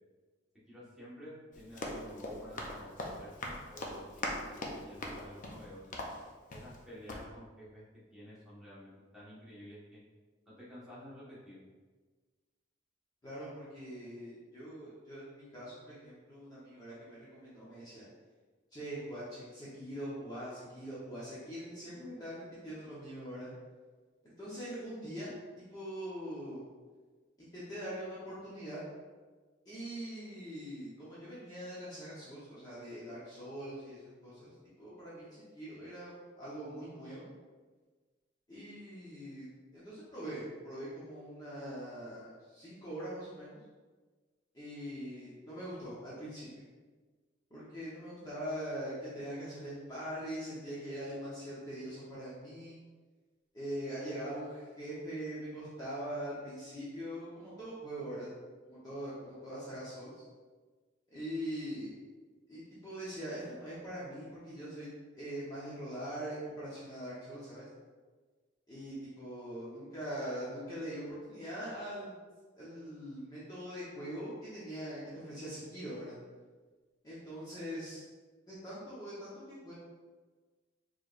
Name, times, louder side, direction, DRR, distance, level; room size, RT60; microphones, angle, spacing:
voice 1, 0.7-6.0 6.5-7.8 8.1-10.0 10.4-11.6, equal, 5° right, -10 dB, 1.3 m, -51 dB
Run, 1.5-6.8 7.1-7.2, left 1 dB, 45° left, 0.5 m, -41 dB
voice 2, 13.2-18.0 18.7-23.5 24.2-25.3 25.7-26.6 27.4-28.8 29.7-34.5 34.8-37.2 38.5-43.6 44.5-46.6 47.5-52.7 53.5-58.3 58.7-60.2 61.1-61.9 62.5-64.9 65.1-67.7 68.7-72.2 72.6-76.1 77.0-78.0 78.5-79.7, equal, 20° left, -10 dB, 0.9 m, -42 dB
4.5 x 3.1 x 2.5 m, 1.4 s
head